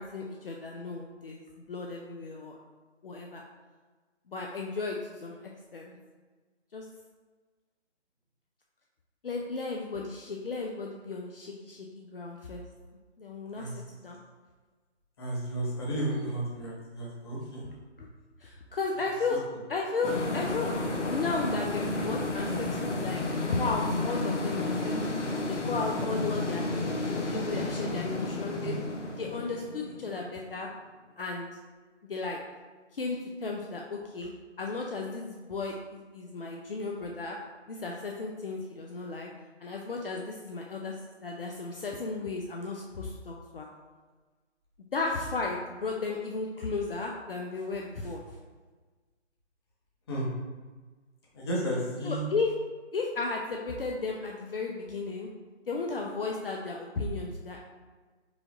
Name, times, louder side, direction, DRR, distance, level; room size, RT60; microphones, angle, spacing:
voice 1, 0.0-1.4 1.7-2.6 3.0-3.4 4.3-6.0 6.7-6.8 9.2-12.6 13.2-13.7 14.0-14.2 18.0-18.1 18.4-19.4 19.7-20.8 21.1-23.2 23.6-25.2 25.5-28.8 29.2-30.7 31.2-31.5 32.0-32.4 32.9-34.3 34.6-37.4 37.7-39.3 39.6-41.0 41.2-43.7 44.9-48.2 52.0-52.5 52.9-55.3 55.7-57.6, left 3 dB, 50° left, 0 dB, 0.5 m, -34 dB
voice 2, 15.2-17.6 28.5-28.7 50.1-50.3 51.3-52.2, right 1 dB, 20° left, -4 dB, 0.8 m, -33 dB
sound 1, 20.0-30.6, left 2 dB, 80° left, 0.9 m, -32 dB
5.0 x 2.4 x 3.9 m, 1.4 s
figure-of-eight pair, 150°, 35 cm